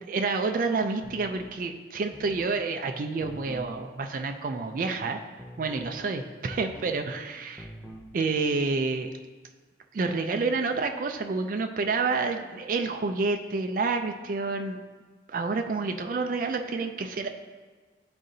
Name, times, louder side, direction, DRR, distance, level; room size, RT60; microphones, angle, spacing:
voice 1, 0.1-5.2 5.6-7.7 8.1-9.1 9.9-14.8 15.3-17.3, right 4 dB, 45° right, 6 dB, 0.3 m, -29 dB
sound 1, 1.0-1.5 2.1-2.6 3.2-3.7 5.4-5.9 6.5-7.0 7.6-8.1, equal, 5° left, 0.5 m, -45 dB
9.8 x 3.7 x 2.7 m, 1.4 s
head